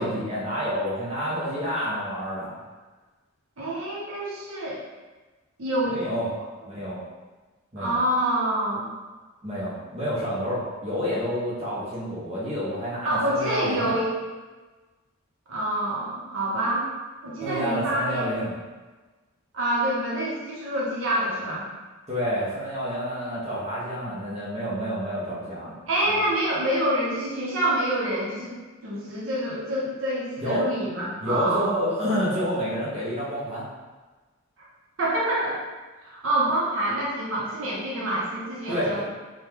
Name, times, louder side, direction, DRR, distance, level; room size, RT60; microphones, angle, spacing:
voice 1, 0.0-2.6 5.9-6.3 6.7-7.0 7.7-7.9 9.4-14.0 17.4-18.5 22.1-25.8 26.1-26.2 30.4-30.7 31.2-33.7 38.7-39.0, equal, 30° right, -8 dB, 0.7 m, -29 dB
voice 2, 3.6-4.8 5.6-6.0 7.8-8.9 13.0-14.1 15.5-16.9 17.2-18.3 19.5-21.7 25.9-28.5 28.8-31.7 35.0-35.6 36.0-39.0, right 1 dB, 65° right, -6 dB, 0.7 m, -26 dB
3.0 x 2.2 x 3.4 m, 1.3 s
head